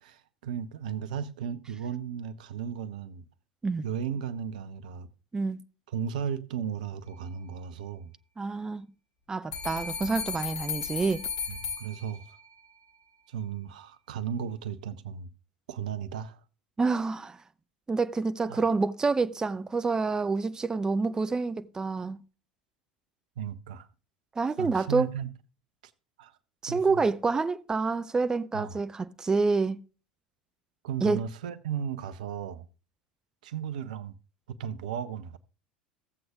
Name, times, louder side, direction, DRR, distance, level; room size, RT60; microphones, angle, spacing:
voice 1, 0.0-3.2 3.8-5.1 5.9-8.1 11.5-12.4 13.3-15.3 15.7-16.4 18.5-18.7 23.4-23.9 24.6-25.3 25.8-25.9 26.2-26.4 26.7-27.0 28.5-28.8 30.8-32.7 33.4-34.1 34.5-35.4, right 8 dB, 60° right, 0.6 m, -35 dB
voice 2, 8.4-8.9 9.3-11.3 16.8-17.4 17.9-22.2 24.4-25.1 26.6-29.8 31.0-31.2, right 4 dB, 15° right, 0.4 m, -27 dB
sound 1, 9.5-12.6, left 6 dB, 55° left, 2.2 m, -35 dB
15.5 x 7.7 x 2.4 m
figure-of-eight pair, 75°, 5 cm